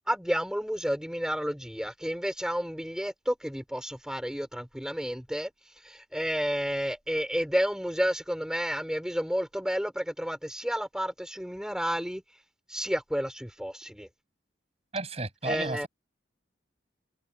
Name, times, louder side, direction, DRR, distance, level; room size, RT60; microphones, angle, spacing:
voice 1, 0.1-12.2 12.7-14.1 15.4-15.9, equal, 5° right, 4.9 m, -31 dB
voice 2, 14.9-15.9, right 2 dB, 35° right, 7.1 m, -33 dB
head